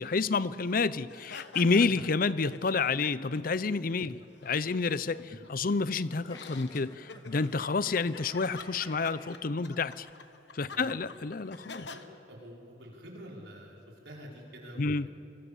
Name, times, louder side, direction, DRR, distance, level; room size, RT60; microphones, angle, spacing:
voice 1, 0.0-10.1 10.5-11.9 14.8-15.1, left 4 dB, 50° left, 16 dB, 0.6 m, -29 dB
sound 1, 1.1-3.5 3.8-5.7 6.3-12.0, left 4 dB, 65° left, 1.2 m, -48 dB
sound 2, 6.1-9.3, left 1 dB, 25° left, 2.7 m, -51 dB
voice 2, 10.7-11.1 11.9-13.8 14.0-15.1, equal, 80° right, -2 dB, 5.4 m, -48 dB
24.5 x 24.0 x 7.1 m, 2.7 s
head